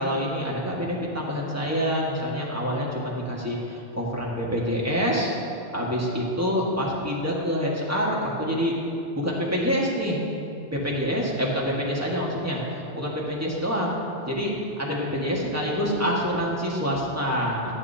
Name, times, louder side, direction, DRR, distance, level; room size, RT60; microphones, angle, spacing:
voice 1, 0.0-5.3 5.7-8.7 9.1-10.2 10.7-14.0 14.2-14.5 14.8-17.7, equal, 15° right, -4 dB, 1.6 m, -26 dB
14.5 x 8.8 x 2.8 m, 2.7 s
omnidirectional pair, 1.1 m